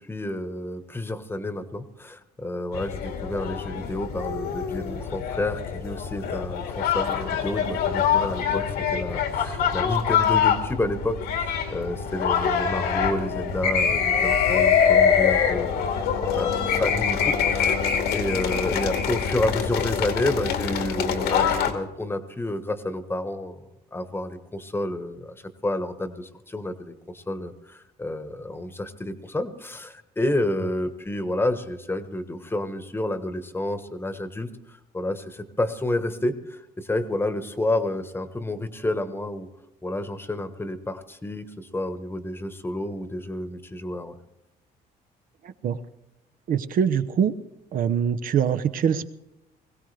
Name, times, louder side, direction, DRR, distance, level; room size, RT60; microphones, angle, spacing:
voice 1, 0.0-8.6 8.9-15.9 16.1-17.7 18.1-25.3 25.6-39.5 39.8-44.2, left 1 dB, 15° left, 10 dB, 1.3 m, -30 dB
sound 1, 2.7-21.7, left 7 dB, 80° left, 2.1 m, -24 dB
voice 2, 45.4-45.8 46.5-47.3 47.7-49.1, right 8 dB, 55° right, 11 dB, 1.0 m, -23 dB
21.0 x 16.5 x 3.4 m, 0.94 s
cardioid pair, 110°, 17 cm